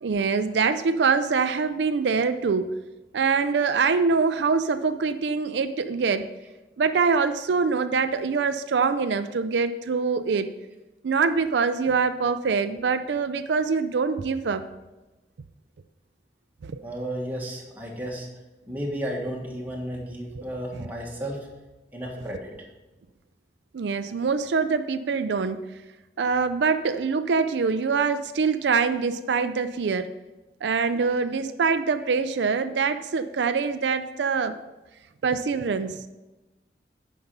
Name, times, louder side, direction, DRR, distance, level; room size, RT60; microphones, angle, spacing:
voice 1, 0.0-2.8 3.1-6.3 6.8-10.5 11.0-14.7 16.6-16.8 20.7-20.9 23.7-25.6 26.2-30.1 30.6-34.6 35.2-36.0, right 5 dB, 80° right, 10 dB, 0.4 m, -24 dB
voice 2, 16.8-18.3 18.7-21.5 21.9-22.5, equal, 10° right, -2 dB, 1.5 m, -33 dB
9.6 x 5.6 x 5.4 m, 1.1 s
head